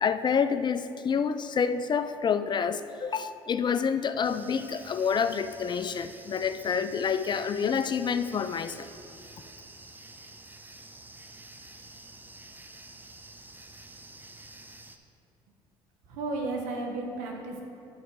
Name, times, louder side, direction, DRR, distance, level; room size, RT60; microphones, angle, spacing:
voice 1, 0.0-8.9, left 6 dB, 35° left, 12 dB, 0.4 m, -28 dB
sound 1, 4.2-15.0, right 2 dB, 15° right, 0.7 m, -49 dB
voice 2, 16.1-17.6, right 2 dB, 80° right, 1 dB, 1.2 m, -33 dB
11.0 x 4.5 x 4.7 m, 2.8 s
supercardioid pair, 70°, 13 cm